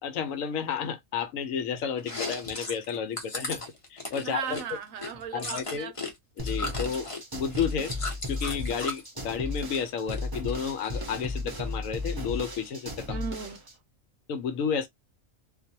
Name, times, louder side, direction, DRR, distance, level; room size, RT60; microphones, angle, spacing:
voice 1, 0.0-3.6 3.9-4.6 5.3-5.9 6.4-7.9 8.3-13.2 14.3-14.9, left 7 dB, 75° left, 1.0 m, -31 dB
Chewing mastication, 2.0-6.1 6.4-9.1 9.5-10.2 10.5-11.4, left 2 dB, 35° left, 0.6 m, -36 dB
voice 2, 4.2-5.9 13.1-13.6, right 7 dB, 70° right, 1.0 m, -36 dB
sound 1, 6.4-13.7, left 2 dB, 25° right, 0.5 m, -35 dB
2.5 x 2.1 x 2.7 m
omnidirectional pair, 1.5 m